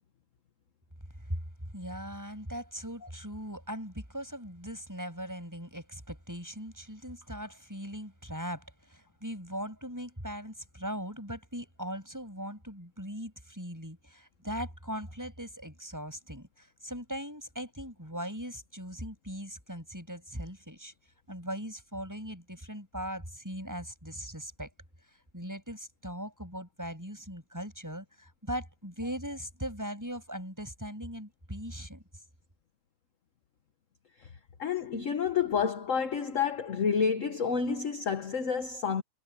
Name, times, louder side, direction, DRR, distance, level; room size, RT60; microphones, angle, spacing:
voice 1, 1.7-20.9 21.3-24.7 25.1-32.0, equal, 10° right, 7.0 m, -39 dB
voice 2, 34.6-39.0, left 6 dB, 45° left, 1.4 m, -29 dB
omnidirectional pair, 2.2 m